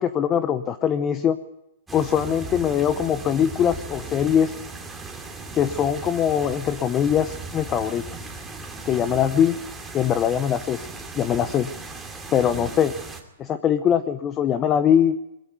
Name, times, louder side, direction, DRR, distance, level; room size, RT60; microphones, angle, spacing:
voice 1, 0.0-1.4 1.9-4.5 5.5-8.2 8.8-9.6 9.9-10.9 11.1-11.7 12.3-12.9 13.4-15.2, left 9 dB, 20° left, 12 dB, 0.8 m, -22 dB
sound 1, 1.9-13.2, right 3 dB, 5° right, 2.5 m, -37 dB
21.5 x 14.5 x 9.3 m, 0.85 s
hypercardioid pair, 150°, 0 cm